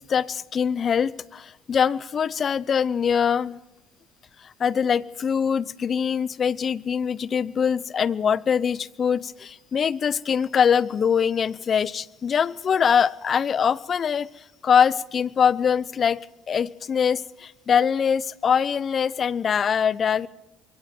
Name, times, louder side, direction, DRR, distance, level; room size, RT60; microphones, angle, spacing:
voice 1, 0.0-3.6 4.4-20.3, left 7 dB, 45° left, 21 dB, 0.8 m, -23 dB
25.5 x 23.0 x 4.5 m, 0.88 s
hypercardioid pair, 65°, 0 cm